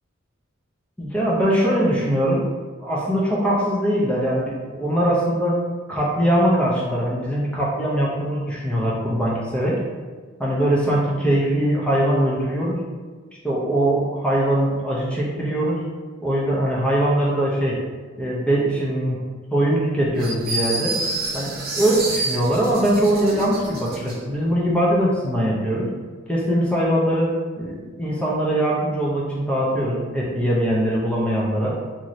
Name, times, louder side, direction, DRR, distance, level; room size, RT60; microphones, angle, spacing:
voice 1, 1.0-2.4 2.8-5.6 5.9-9.8 10.4-12.8 13.4-15.8 16.2-17.8 18.2-19.2 19.5-21.0 21.3-25.9 26.3-27.3 27.6-31.8, right 1 dB, 5° left, -5 dB, 0.5 m, -21 dB
sound 1, 20.2-24.2, right 2 dB, 45° right, 0.7 m, -28 dB
3.0 x 2.7 x 2.6 m, 1.4 s
head